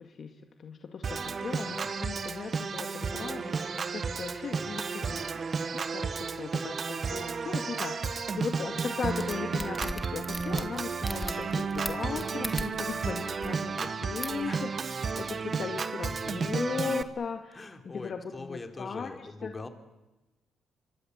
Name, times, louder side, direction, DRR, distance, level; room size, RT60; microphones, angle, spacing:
voice 1, 0.0-5.4 5.7-14.7 15.2-19.5, left 6 dB, 50° left, 5 dB, 2.0 m, -38 dB
Organ, 1.0-17.0, right 5 dB, 40° right, 1.5 m, -33 dB
voice 2, 1.3-2.0 4.6-5.1 13.8-14.7 17.5-19.7, left 3 dB, 25° left, 6 dB, 3.3 m, -44 dB
sound 1, 9.0-13.0 13.3-13.5 14.2-14.4, left 1 dB, 5° left, 2.3 m, -37 dB
27.0 x 24.5 x 8.1 m, 1.0 s
cardioid pair, 90°, 0 cm